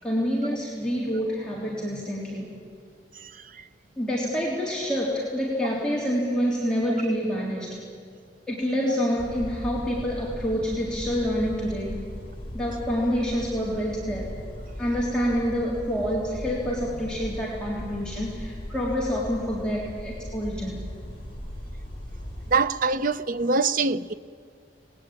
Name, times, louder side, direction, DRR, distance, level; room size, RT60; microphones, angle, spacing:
voice 1, 0.0-2.6 4.0-7.8 8.5-12.1 12.5-14.3 14.8-20.8, equal, 5° left, 3.7 m, -27 dB
sound 1, 9.2-22.6, equal, 35° left, 4.1 m, -38 dB
voice 2, 22.5-24.1, right 4 dB, 50° right, 0.7 m, -23 dB
27.5 x 20.5 x 9.0 m
head